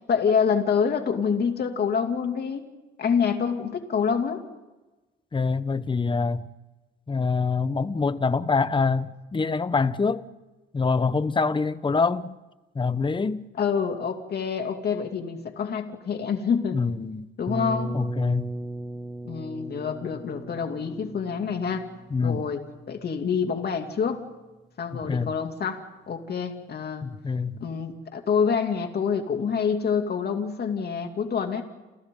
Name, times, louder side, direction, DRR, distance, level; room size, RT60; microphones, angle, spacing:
voice 1, 0.1-2.7 3.0-4.4 13.6-16.8 17.4-18.0 19.3-21.8 22.2-24.2 24.8-27.1 27.6-31.6, left 6 dB, 55° left, 2.7 m, -26 dB
voice 2, 5.3-6.5 7.1-10.3 10.7-12.3 12.7-13.5 16.7-17.3 17.9-18.5 22.1-22.4 24.9-25.3 27.0-27.6, left 4 dB, 25° left, 1.1 m, -25 dB
sound 1, 17.5-23.2, right 1 dB, 5° right, 1.3 m, -37 dB
29.5 x 28.5 x 3.9 m
cardioid pair, 90°, 20 cm